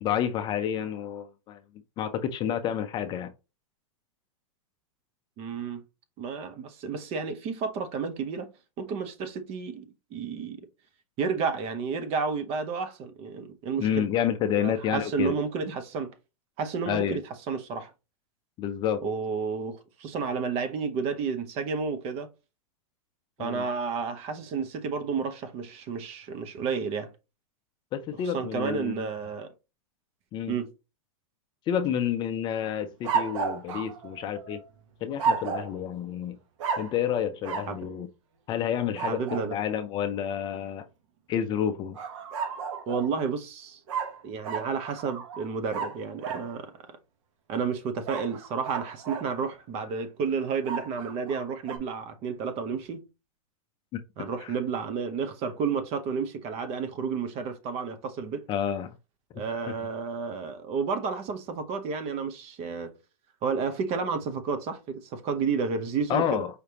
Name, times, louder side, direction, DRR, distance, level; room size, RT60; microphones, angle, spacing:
voice 1, 0.0-1.6 2.0-3.3 13.8-15.3 16.9-17.2 18.6-19.0 23.4-23.6 27.9-29.0 30.3-30.6 31.7-34.6 35.0-36.4 36.8-38.1 38.5-39.2 39.5-40.8 41.3-42.0 54.4-54.5 58.5-58.9 59.3-59.4 66.1-66.5, left 9 dB, 25° left, 0.5 m, -29 dB
voice 2, 5.4-5.8 6.2-8.5 8.8-10.6 11.2-14.1 14.6-16.1 16.6-17.2 17.5-17.9 19.0-22.3 23.4-27.1 28.2-29.5 30.5-30.7 37.7-37.8 39.1-39.6 42.9-43.8 44.2-46.8 47.5-53.0 54.2-58.5 59.3-62.9 63.4-66.4, right 5 dB, 35° right, 0.8 m, -31 dB
sound 1, 33.0-34.6 35.2-35.8 36.6-37.0 37.4-37.7 38.9-39.5 41.9-43.1 43.9-46.5 48.1-49.3 50.6-51.8, right 5 dB, 60° right, 1.2 m, -32 dB
4.9 x 3.3 x 2.8 m
hypercardioid pair, 130°, 18 cm